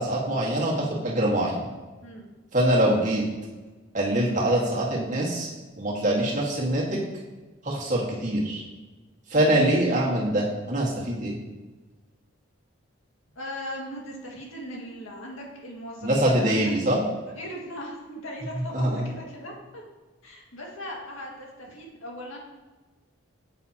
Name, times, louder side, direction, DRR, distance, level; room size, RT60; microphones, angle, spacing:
voice 1, 0.0-1.6 2.5-3.2 3.9-5.5 5.8-7.0 7.6-8.6 9.3-11.4 16.0-17.0 18.7-19.0, right 1 dB, 35° right, -4 dB, 1.8 m, -24 dB
voice 2, 13.4-16.7 17.4-19.8 20.2-22.4, equal, 80° left, -2 dB, 2.0 m, -38 dB
9.1 x 8.1 x 2.9 m, 1.3 s
head